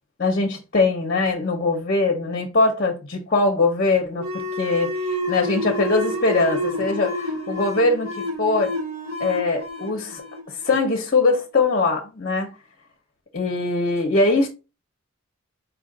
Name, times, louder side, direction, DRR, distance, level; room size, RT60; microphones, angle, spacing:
voice 1, 0.2-4.2 4.6-8.7 9.2-10.2 10.5-12.5 13.3-14.5, left 3 dB, 45° left, 0.7 m, -22 dB
sound 1, 4.1-11.4, equal, 90° right, 1.9 m, -29 dB
4.7 x 2.5 x 3.7 m
head